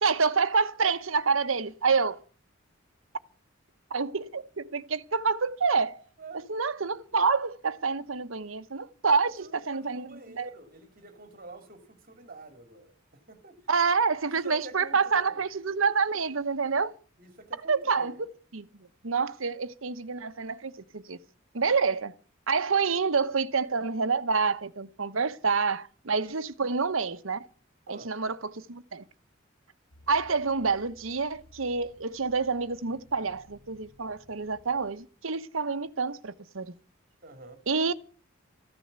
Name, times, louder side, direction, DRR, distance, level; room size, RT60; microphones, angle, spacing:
voice 1, 0.0-2.2 3.9-6.0 6.5-10.1 10.3-10.5 13.7-16.9 17.7-18.2 18.5-18.7 19.0-21.2 21.5-22.2 22.5-27.5 27.9-29.0 30.1-36.7 37.7-37.9, right 5 dB, 75° right, 1.0 m, -27 dB
voice 2, 9.2-13.6 14.2-15.4 17.2-18.1 27.9-28.1 37.2-37.6, right 2 dB, 45° right, 2.7 m, -47 dB
sound 1, 29.9-34.9, left 1 dB, 30° left, 7.9 m, -57 dB
14.5 x 9.8 x 8.1 m
head